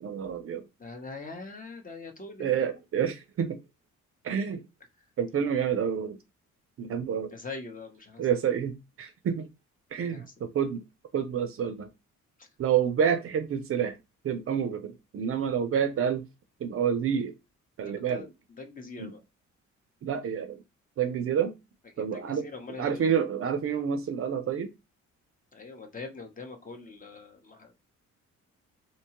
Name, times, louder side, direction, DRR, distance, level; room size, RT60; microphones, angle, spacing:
voice 1, 0.0-0.7 2.4-3.6 4.2-4.6 5.2-6.2 6.8-7.3 8.2-9.5 9.9-10.8 11.1-11.9 12.6-14.0 14.2-16.2 16.6-17.3 17.8-18.3 19.0-19.1 20.0-20.6 21.0-21.6 22.0-22.5 22.8-24.7, right 8 dB, 50° right, 0.5 m, -28 dB
voice 2, 0.8-2.6 7.3-8.3 10.0-10.3 12.4-12.5 17.8-18.3 18.6-19.2 22.0-23.1 25.5-27.7, left 3 dB, 25° left, 0.8 m, -43 dB
2.8 x 2.2 x 2.9 m
cardioid pair, 90°, 30 cm